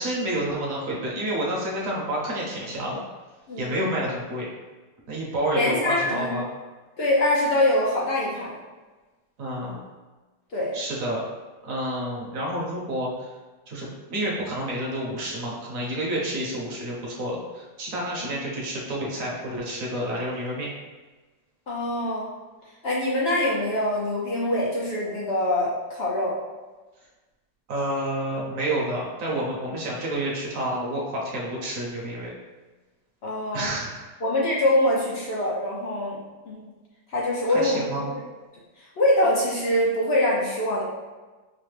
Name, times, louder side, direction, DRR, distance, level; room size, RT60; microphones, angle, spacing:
voice 1, 0.0-3.0 3.6-4.5 5.1-6.5 9.4-9.8 10.7-11.2 11.6-13.3 13.7-20.7 27.7-32.3 33.5-34.2 37.5-38.1, right 1 dB, 55° right, -3 dB, 1.0 m, -29 dB
voice 2, 5.6-6.4 7.0-8.6 10.5-10.7 18.2-18.3 21.7-22.3 22.8-26.3 33.2-33.7 34.2-36.2 36.5-36.6 37.1-38.1 39.0-40.8, left 1 dB, 70° left, -5 dB, 0.6 m, -24 dB
5.2 x 2.1 x 3.2 m, 1.2 s
omnidirectional pair, 2.0 m